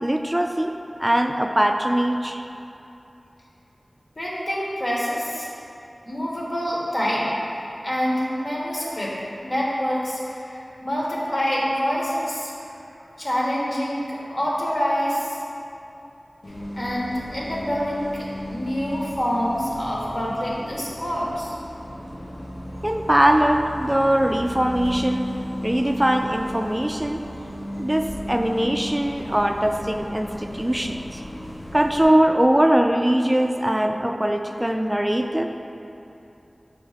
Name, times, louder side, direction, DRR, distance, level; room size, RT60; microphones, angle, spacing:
voice 1, 0.0-0.7 1.0-2.4 22.8-25.3 25.6-27.2 27.8-31.2 31.7-35.5, right 1 dB, 15° right, 4 dB, 0.3 m, -21 dB
voice 2, 4.1-5.5 6.1-9.1 9.4-12.7 13.2-15.4 16.8-21.5, equal, 50° left, -5 dB, 1.4 m, -26 dB
Bus, 16.4-32.0, equal, 80° left, 1.1 m, -35 dB
6.1 x 3.5 x 5.0 m, 2.8 s
wide cardioid pair, 60°, 0 cm